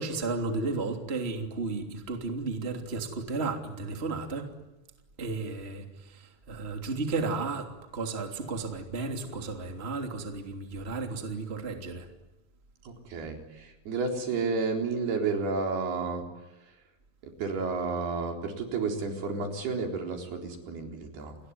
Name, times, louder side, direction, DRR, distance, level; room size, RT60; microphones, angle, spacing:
voice 1, 0.0-4.5 5.2-12.1, right 3 dB, 15° right, 4 dB, 2.7 m, -33 dB
voice 2, 12.9-16.2 17.4-21.4, right 4 dB, 75° right, 3 dB, 5.9 m, -31 dB
29.0 x 21.0 x 9.5 m, 1.0 s
omnidirectional pair, 4.6 m